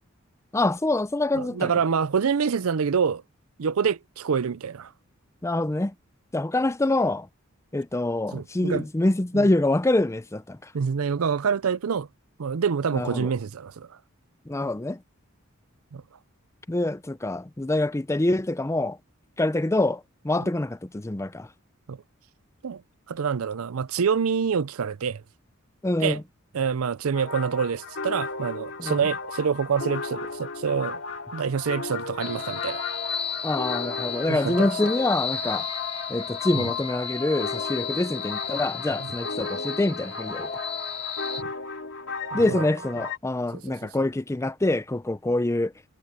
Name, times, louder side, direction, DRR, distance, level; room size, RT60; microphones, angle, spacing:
voice 1, 0.5-1.7 5.4-5.9 6.3-7.3 7.7-10.6 12.9-13.3 14.5-15.0 16.7-19.0 19.4-21.5 25.8-26.2 28.8-29.0 33.4-35.7 36.1-40.5 42.3-45.7, left 2 dB, 15° left, 0.5 m, -25 dB
voice 2, 1.3-3.2 3.6-4.9 8.3-8.8 9.3-9.5 10.7-12.1 12.4-13.9 15.9-16.0 20.4-20.5 21.9-22.0 22.6-22.8 23.1-25.2 26.0-26.2 26.5-31.0 31.3-32.8 34.3-34.7 36.5-36.7 39.0-39.1 41.4-41.5 42.3-42.7 43.5-43.8, right 6 dB, 85° right, 0.5 m, -26 dB
sound 1, 27.1-43.2, left 4 dB, 65° left, 2.4 m, -35 dB
sound 2, 32.2-41.4, left 6 dB, 30° left, 2.8 m, -33 dB
head